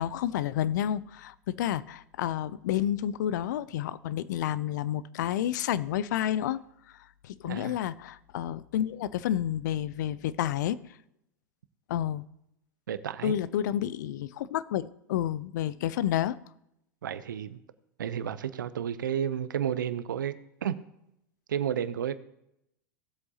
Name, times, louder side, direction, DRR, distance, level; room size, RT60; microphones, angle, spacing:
voice 1, 0.0-6.6 7.2-10.8 11.9-12.2 13.2-16.4, left 11 dB, 70° left, 18 dB, 0.5 m, -30 dB
voice 2, 7.4-7.8 12.9-13.3 17.0-17.6 18.0-20.7 21.5-22.2, right 9 dB, 80° right, 14 dB, 0.7 m, -32 dB
17.0 x 8.0 x 2.8 m, 0.81 s
hypercardioid pair, 95°, 10 cm